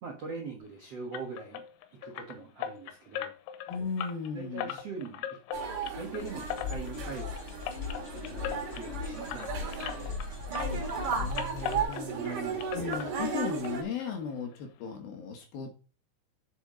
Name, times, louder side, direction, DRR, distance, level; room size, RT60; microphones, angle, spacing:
voice 1, 0.0-1.6 1.9-3.3 4.3-5.4 5.9-7.7 8.1-10.1 12.1-12.7, right 4 dB, 75° right, 1 dB, 1.4 m, -42 dB
sound 1, 1.1-10.3 10.5-12.3 12.6-13.7 14.0-14.1 14.5-14.6 15.0-15.1, left 10 dB, 85° left, 3.2 m, -39 dB
voice 2, 3.7-4.8 10.7-15.7, left 5 dB, 65° left, 4 dB, 2.6 m, -37 dB
sound 2, 5.5-13.8, right 5 dB, 55° right, 2.9 m, -35 dB
sound 3, 6.2-11.8, left 5 dB, 50° left, 1.5 m, -39 dB
8.0 x 7.0 x 3.8 m, 0.34 s
omnidirectional pair, 5.3 m